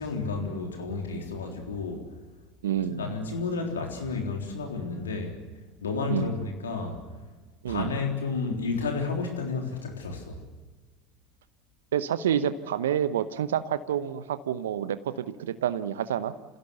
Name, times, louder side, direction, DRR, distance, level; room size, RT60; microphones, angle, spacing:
voice 1, 0.0-2.1 2.9-5.3 5.8-7.0 7.7-10.4, left 4 dB, 85° left, 3 dB, 3.6 m, -31 dB
voice 2, 2.6-3.1 6.1-6.4 7.6-8.0 11.9-16.3, right 9 dB, 80° right, 13 dB, 0.8 m, -28 dB
27.5 x 16.5 x 8.0 m, 1.2 s
hypercardioid pair, 75°, 0 cm